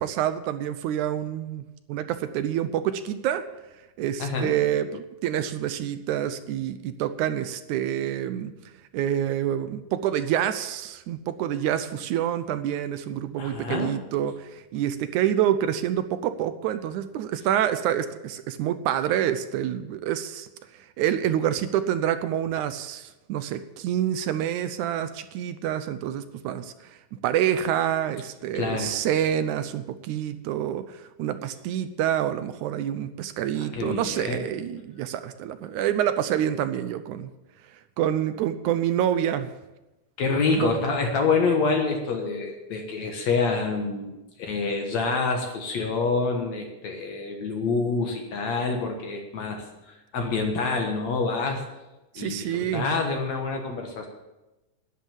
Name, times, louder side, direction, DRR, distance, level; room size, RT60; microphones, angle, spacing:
voice 1, 0.0-1.6 1.9-3.4 4.0-8.5 8.9-20.5 21.0-26.7 27.2-37.3 38.0-39.5 40.5-40.8 52.1-53.0, right 10 dB, 75° right, 11 dB, 1.9 m, -27 dB
voice 2, 4.2-4.6 13.4-14.0 28.5-28.9 33.6-34.5 40.2-51.6 52.2-54.1, left 4 dB, 60° left, 2 dB, 2.4 m, -27 dB
11.0 x 10.5 x 7.4 m, 1.0 s
omnidirectional pair, 3.9 m